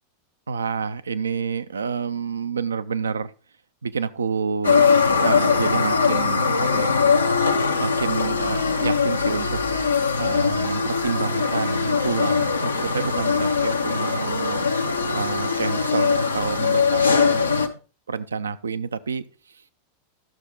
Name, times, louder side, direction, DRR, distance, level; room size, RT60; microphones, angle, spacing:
voice 1, 0.5-3.3 3.8-7.0 7.8-9.6 10.1-14.7 15.1-17.8 18.1-19.2, right 5 dB, 70° right, 0.5 m, -29 dB
sound 1, 4.6-17.7, left 5 dB, 80° left, 0.8 m, -21 dB
12.0 x 6.4 x 3.8 m
figure-of-eight pair, 90°, 0 cm